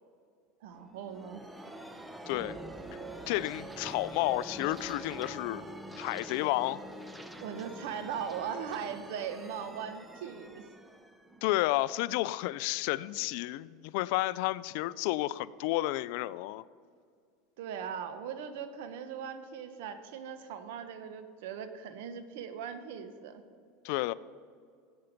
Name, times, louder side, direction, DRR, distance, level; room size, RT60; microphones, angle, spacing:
voice 1, 0.6-1.4 7.4-10.6 17.6-23.4, right 7 dB, 75° right, 9 dB, 1.1 m, -39 dB
sound 1, 0.7-12.2, right 1 dB, 5° right, 0.8 m, -45 dB
voice 2, 2.3-2.6 3.3-5.6 6.0-6.8 11.4-16.6 23.8-24.1, left 18 dB, 65° left, 19 dB, 0.3 m, -31 dB
15.0 x 8.0 x 5.2 m, 2.1 s
supercardioid pair, 115°, 0 cm